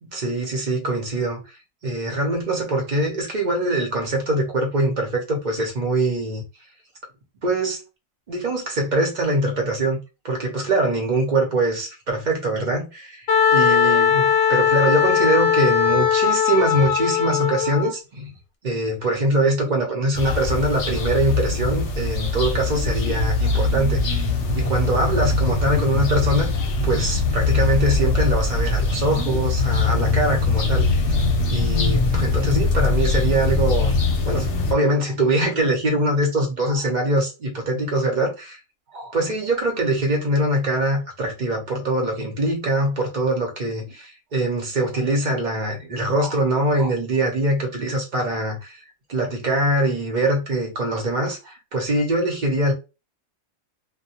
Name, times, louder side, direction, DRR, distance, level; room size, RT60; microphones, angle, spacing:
voice 1, 0.0-1.4 1.8-6.4 7.4-7.8 8.3-10.0 10.2-13.3 13.5-18.3 18.6-24.3 24.5-26.5 26.8-31.0 31.5-33.9 34.2-38.6 38.9-48.8 49.1-52.7, right 1 dB, 40° right, 0.8 m, -23 dB
Wind instrument woodwind instrument, 13.3-17.9, left 8 dB, 90° left, 1.0 m, -19 dB
sound 1, 20.2-34.7, left 3 dB, 65° left, 0.8 m, -22 dB
2.2 x 2.2 x 2.7 m
omnidirectional pair, 1.4 m